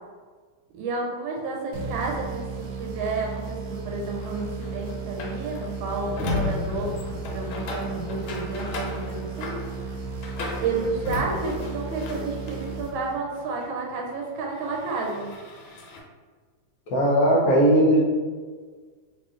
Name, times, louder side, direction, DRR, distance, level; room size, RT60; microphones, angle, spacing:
voice 1, 0.7-9.6 10.6-15.3, right 3 dB, 85° right, 0 dB, 1.5 m, -31 dB
sound 1, 1.7-13.4, right 4 dB, 70° right, 1.1 m, -35 dB
sound 2, 4.2-12.9 13.2-16.0, left 2 dB, 85° left, 1.5 m, -36 dB
voice 2, 16.9-18.0, right 1 dB, 65° left, -4 dB, 1.0 m, -18 dB
3.0 x 2.9 x 3.6 m, 1.5 s
omnidirectional pair, 2.2 m